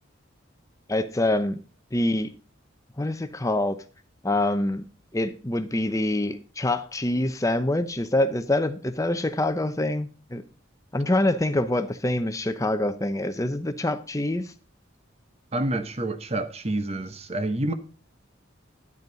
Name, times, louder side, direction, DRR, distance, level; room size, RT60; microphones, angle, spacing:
voice 1, 0.9-1.6 1.9-2.3 3.0-3.8 4.2-4.8 5.1-10.4 10.9-14.5, left 1 dB, 15° left, 0.8 m, -25 dB
voice 2, 15.5-17.7, right 1 dB, 35° right, 1.0 m, -28 dB
11.0 x 8.1 x 3.9 m
head